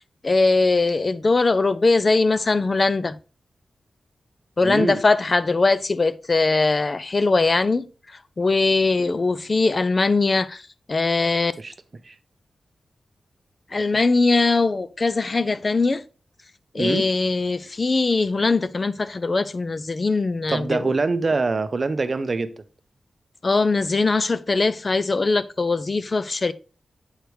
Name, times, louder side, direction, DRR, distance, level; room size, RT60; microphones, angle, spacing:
voice 1, 0.2-3.2 4.6-11.5 13.7-16.0 16.7-20.9 23.4-26.5, left 3 dB, 35° left, 0.3 m, -21 dB
voice 2, 4.6-5.0 9.0-9.2 11.6-11.7 12.0-12.1 16.8-17.1 20.5-22.5, right 3 dB, 40° right, 0.5 m, -24 dB
8.0 x 4.6 x 3.2 m
wide cardioid pair, 125°, 0 cm